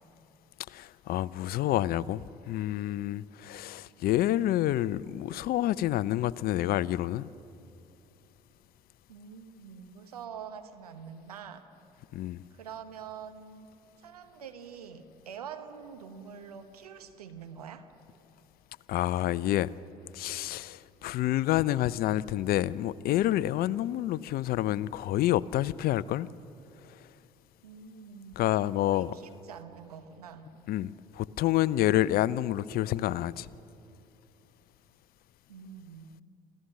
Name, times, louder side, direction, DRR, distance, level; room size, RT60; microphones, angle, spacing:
voice 1, 0.7-7.3 12.1-12.4 18.9-19.7 20.1-26.3 28.4-29.1 30.7-33.5, left 14 dB, 55° left, 0.5 m, -28 dB
voice 2, 9.1-11.7 12.5-13.7 14.0-17.9 27.6-28.4 28.8-30.5 35.5-36.1, right 7 dB, 85° right, 1.1 m, -45 dB
26.5 x 15.0 x 6.5 m
hypercardioid pair, 55°, 19 cm